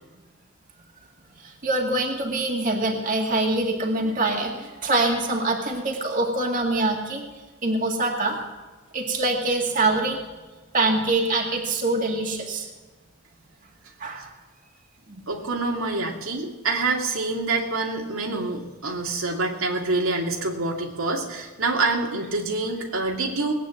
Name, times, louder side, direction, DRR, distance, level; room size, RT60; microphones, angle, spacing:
voice 1, 1.4-7.3 7.6-8.4 8.9-10.2 10.7-12.7 14.0-14.3 15.1-15.2 23.0-23.1, right 2 dB, 40° right, 0 dB, 2.3 m, -24 dB
voice 2, 15.3-23.5, right 3 dB, 85° right, 0 dB, 2.3 m, -26 dB
19.0 x 9.2 x 7.6 m, 1.3 s
head